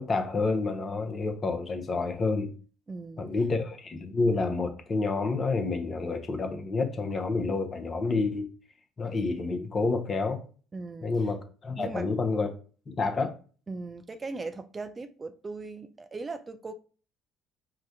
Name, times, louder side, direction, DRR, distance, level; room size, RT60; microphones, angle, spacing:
voice 1, 0.0-2.5 3.2-8.5 9.0-10.4 11.0-12.5 12.9-13.3, left 3 dB, 35° left, 0.6 m, -29 dB
voice 2, 2.9-3.3 10.7-11.3 11.8-12.1 13.7-16.7, right 3 dB, 25° right, 0.3 m, -39 dB
4.8 x 2.1 x 2.6 m
figure-of-eight pair, 50°, 0 cm